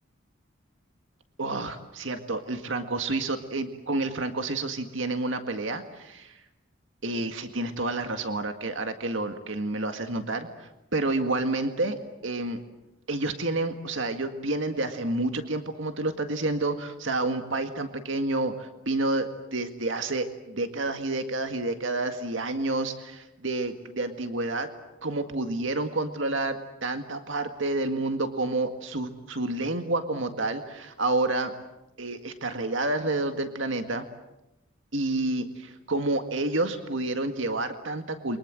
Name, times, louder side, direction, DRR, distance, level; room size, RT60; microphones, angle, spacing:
voice 1, 1.4-6.4 7.0-12.0 12.2-12.6 13.1-24.7 25.0-31.5 32.0-34.1 34.9-38.4, right 2 dB, 70° right, 7 dB, 1.9 m, -29 dB
29.5 x 24.0 x 7.7 m, 0.93 s
head